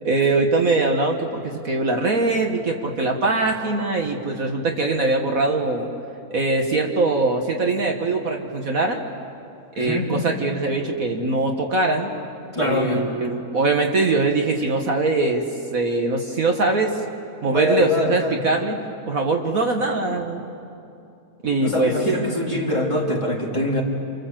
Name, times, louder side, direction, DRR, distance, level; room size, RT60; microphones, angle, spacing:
voice 1, 0.0-5.9 6.3-9.0 9.8-12.1 12.6-15.4 15.7-17.0 17.4-18.8 19.1-20.4 21.4-21.9, right 3 dB, 55° right, 3 dB, 1.8 m, -22 dB
voice 2, 9.7-10.1 12.5-13.1 17.5-18.4 21.6-23.8, left 1 dB, 15° left, -3 dB, 3.3 m, -23 dB
28.5 x 27.5 x 7.6 m, 2.6 s
omnidirectional pair, 1.8 m